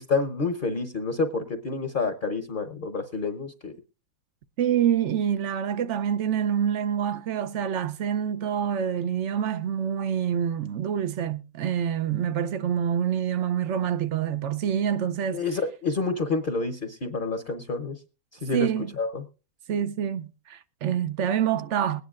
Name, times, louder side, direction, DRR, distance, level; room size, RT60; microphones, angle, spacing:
voice 1, 0.0-3.7 15.3-18.0 18.4-18.7 19.0-19.2, left 4 dB, 40° left, 1.0 m, -28 dB
voice 2, 4.6-15.4 18.5-18.9 19.7-22.0, right 9 dB, 60° right, 1.0 m, -26 dB
21.5 x 9.6 x 2.4 m
omnidirectional pair, 1.5 m